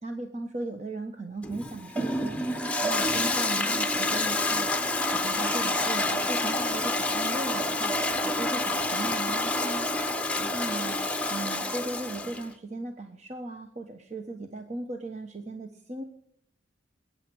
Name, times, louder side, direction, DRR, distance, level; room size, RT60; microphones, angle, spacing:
voice 1, 0.0-2.4 2.8-4.7 5.1-8.0 8.2-9.9 10.4-11.0 11.3-16.0, right 2 dB, 35° right, 4 dB, 1.2 m, -37 dB
Toilet flush, 1.4-12.5, left 2 dB, 5° left, 0.9 m, -28 dB
21.0 x 9.5 x 6.3 m, 0.73 s
head